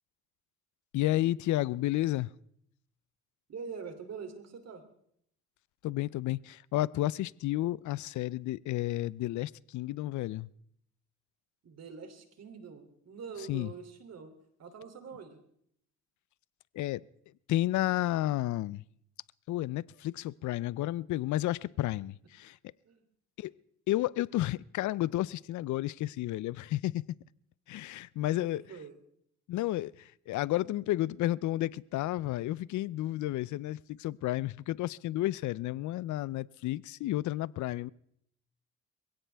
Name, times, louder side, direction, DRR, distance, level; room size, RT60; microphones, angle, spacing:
voice 1, 0.9-2.3 5.8-10.5 13.5-13.7 16.7-17.0 17.5-18.8 19.5-22.6 23.4-23.5 23.9-27.1 27.7-28.6 29.5-37.9, left 15 dB, 75° left, 0.5 m, -31 dB
voice 2, 3.5-4.8 11.6-14.3 14.6-15.4 22.8-23.0 28.3-28.9, right 5 dB, 55° right, 3.0 m, -44 dB
22.0 x 16.5 x 3.4 m
cardioid pair, 90°, 30 cm